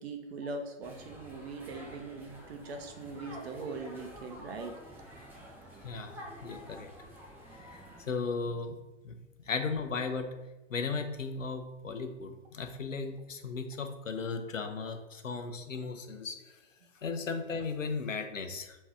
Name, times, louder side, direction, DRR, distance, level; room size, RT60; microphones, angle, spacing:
voice 1, 0.0-5.0, right 3 dB, 55° right, 4 dB, 0.9 m, -41 dB
sound 1, 0.8-8.0, equal, 5° right, 0.6 m, -49 dB
voice 2, 5.8-6.9 7.6-8.8 9.0-9.1 9.5-10.3 10.7-16.4 17.0-18.8, left 4 dB, 85° left, 6 dB, 0.7 m, -36 dB
3.5 x 3.1 x 4.7 m, 1.1 s
figure-of-eight pair, 115°, 38 cm